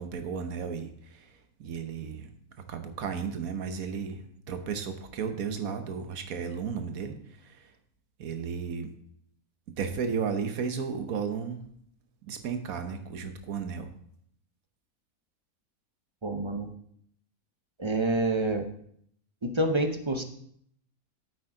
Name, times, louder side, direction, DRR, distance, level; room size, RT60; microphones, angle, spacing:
voice 1, 0.0-1.3 1.6-2.3 2.7-7.2 7.4-7.7 8.2-8.9 9.8-11.6 12.2-13.9, right 6 dB, 70° right, 8 dB, 1.4 m, -34 dB
voice 2, 16.2-16.7 17.8-18.6 19.4-20.2, right 2 dB, 30° right, 4 dB, 0.5 m, -27 dB
9.0 x 8.2 x 3.8 m, 0.67 s
omnidirectional pair, 1.6 m